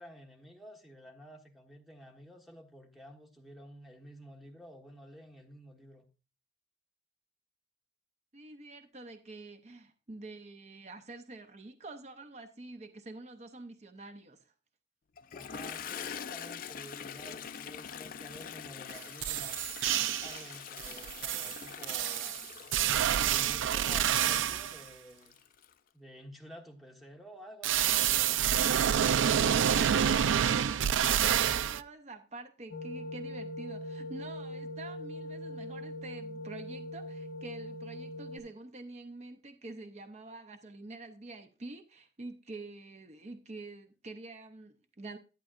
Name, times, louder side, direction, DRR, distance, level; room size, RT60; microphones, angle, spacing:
voice 1, 0.0-6.1 15.3-19.6 20.2-25.4 25.9-28.4, equal, ahead, 1.2 m, -51 dB
voice 2, 8.3-14.5 31.1-45.2, right 2 dB, 35° right, 0.6 m, -47 dB
Toilet flush, 15.2-25.7, left 8 dB, 45° left, 0.4 m, -44 dB
sound 1, 18.9-19.0 19.2-20.4 20.8-24.8 27.6-31.8, right 9 dB, 80° right, 0.4 m, -28 dB
sound 2, 32.7-38.4, left 1 dB, 90° left, 1.2 m, -41 dB
11.5 x 9.1 x 2.5 m
head